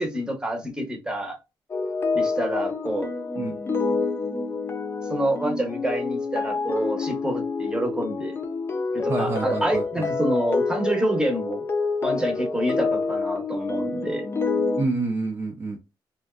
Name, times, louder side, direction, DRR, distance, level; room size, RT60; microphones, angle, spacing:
voice 1, 0.0-1.4 2.1-3.1 5.1-8.4 8.9-11.6 12.0-14.3, right 1 dB, 10° right, 3 dB, 0.9 m, -27 dB
sound 1, 1.7-14.8, left 4 dB, 30° left, 0.5 m, -27 dB
voice 2, 9.1-10.1 14.8-15.8, right 3 dB, 30° right, 1 dB, 0.5 m, -28 dB
2.5 x 2.2 x 2.3 m, 0.25 s
cardioid pair, 105°, 9 cm